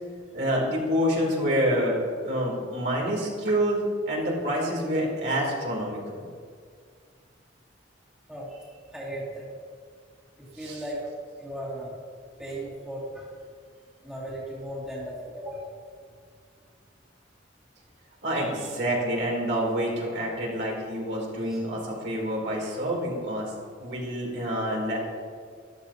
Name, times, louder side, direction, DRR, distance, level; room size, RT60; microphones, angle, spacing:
voice 1, 0.3-2.0 2.2-6.2 10.6-10.8 18.2-23.5 23.8-25.0, equal, 60° right, -3 dB, 3.2 m, -27 dB
voice 2, 8.3-9.5 10.4-11.1 11.4-12.0 12.4-13.4 14.0-15.8 18.4-18.7 21.4-21.6 22.8-22.9, right 1 dB, 5° right, -8 dB, 2.5 m, -37 dB
13.5 x 12.0 x 2.9 m, 2.1 s
head